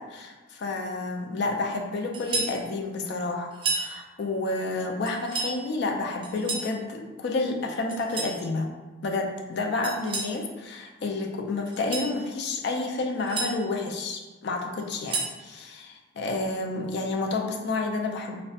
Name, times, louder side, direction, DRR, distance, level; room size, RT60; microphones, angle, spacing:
voice 1, 0.0-8.7 9.0-18.4, left 3 dB, 50° left, 2 dB, 0.3 m, -30 dB
sound 1, 2.1-2.6 3.5-3.9 5.1-5.6 6.2-6.7 7.9-8.4 9.8-10.4 11.7-12.1 13.0-13.5 14.8-15.4, right 3 dB, 25° right, 0.3 m, -31 dB
3.1 x 2.1 x 2.7 m, 1.2 s
head